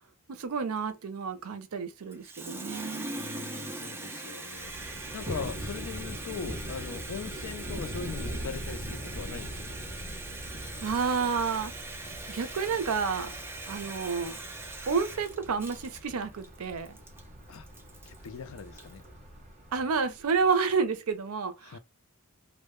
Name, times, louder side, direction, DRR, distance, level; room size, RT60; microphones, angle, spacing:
voice 1, 0.3-3.1 10.8-11.7 12.3-13.3 13.7-14.4 14.9-17.0 19.7-21.8, right 5 dB, 85° right, 0.5 m, -30 dB
Water tap faucet, 2.1-19.0, right 2 dB, 10° right, 0.3 m, -41 dB
voice 2, 3.2-9.8 17.5-17.7 18.0-19.0 21.6-21.8, left 5 dB, 70° left, 0.4 m, -41 dB
Thunder, 4.5-20.5, equal, 35° right, 0.7 m, -42 dB
2.1 x 2.0 x 3.0 m
head